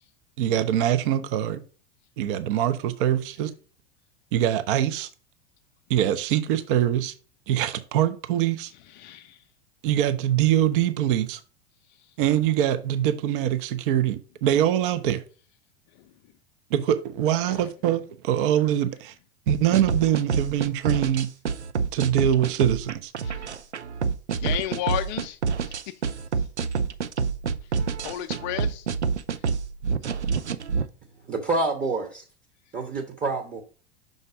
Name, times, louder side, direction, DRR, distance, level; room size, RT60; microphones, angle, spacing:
voice 1, 0.4-1.6 2.2-3.5 4.3-5.1 5.9-7.1 7.5-8.7 9.8-11.4 12.2-15.2 16.7-19.1 19.5-21.3 21.9-23.1, right 11 dB, 50° right, 0.7 m, -23 dB
voice 2, 9.0-9.4 23.2-23.5 24.4-25.4 25.6-25.8 28.0-28.9, left 12 dB, 40° left, 0.5 m, -32 dB
sound 1, 19.5-30.9, right 5 dB, 85° right, 0.6 m, -27 dB
voice 3, 31.3-32.2 32.7-33.6, right 3 dB, 25° right, 1.0 m, -27 dB
6.0 x 4.0 x 4.9 m
figure-of-eight pair, 90°, 34 cm